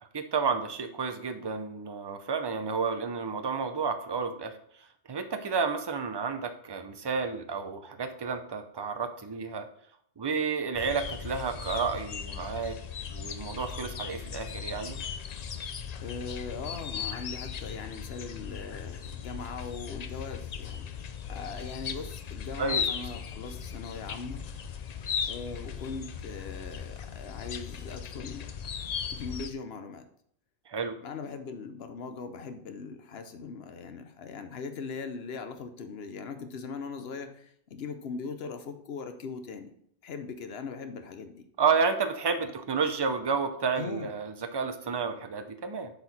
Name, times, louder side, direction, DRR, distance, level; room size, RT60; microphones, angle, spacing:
voice 1, 0.0-4.6 5.1-9.7 10.2-12.8 13.1-15.0 22.6-22.8 30.7-31.0 41.6-45.9, right 5 dB, 30° right, 8 dB, 0.5 m, -31 dB
sound 1, 10.7-29.5, left 7 dB, 50° left, 0.5 m, -37 dB
voice 2, 16.0-24.4 25.3-28.5 29.1-30.1 31.0-39.7 40.0-41.5 43.8-44.1, left 5 dB, 70° left, 8 dB, 1.0 m, -40 dB
8.1 x 4.6 x 4.1 m, 0.66 s
omnidirectional pair, 1.1 m